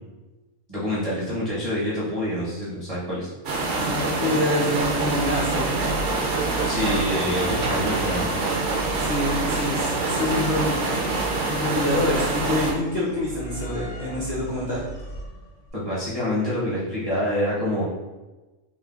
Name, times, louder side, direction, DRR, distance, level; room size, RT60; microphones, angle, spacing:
voice 1, 0.7-3.3 6.7-8.3 15.7-17.8, left 1 dB, 40° right, -10 dB, 0.5 m, -26 dB
sound 1, 3.4-12.7, right 3 dB, 65° right, 0.8 m, -25 dB
voice 2, 3.9-5.8 9.0-10.9 11.5-14.8, left 1 dB, 45° left, -8 dB, 0.6 m, -26 dB
sound 2, 4.8-15.7, right 3 dB, 75° left, 1.1 m, -36 dB
3.2 x 2.1 x 2.3 m, 1.1 s
omnidirectional pair, 1.4 m